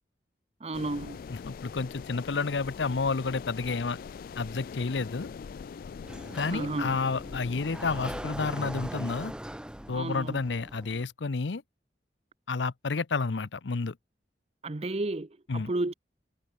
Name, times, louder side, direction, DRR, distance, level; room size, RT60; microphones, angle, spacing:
voice 1, 0.6-1.2 6.5-7.0 9.9-10.4 14.6-15.9, right 2 dB, 35° right, 0.7 m, -32 dB
sound 1, 0.7-8.2, left 6 dB, 50° left, 0.3 m, -42 dB
voice 2, 1.5-4.0 4.4-5.3 6.3-9.3 9.9-11.6 12.5-14.0 15.5-15.7, left 4 dB, 80° left, 0.7 m, -30 dB
Sliding door, 6.0-11.0, equal, 5° right, 1.0 m, -40 dB
head